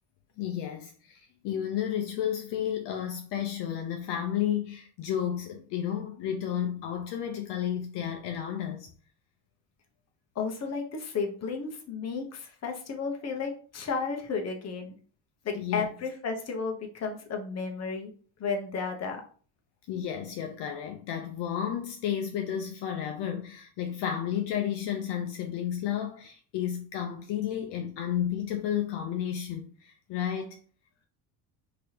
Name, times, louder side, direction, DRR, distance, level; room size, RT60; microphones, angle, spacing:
voice 1, 0.4-8.9 15.5-15.9 19.9-30.6, left 9 dB, 60° left, 0.6 m, -32 dB
voice 2, 10.3-14.9 15.4-18.1 18.4-19.2, left 5 dB, 35° left, 0.9 m, -33 dB
3.3 x 2.9 x 2.9 m
cardioid pair, 105°, 48 cm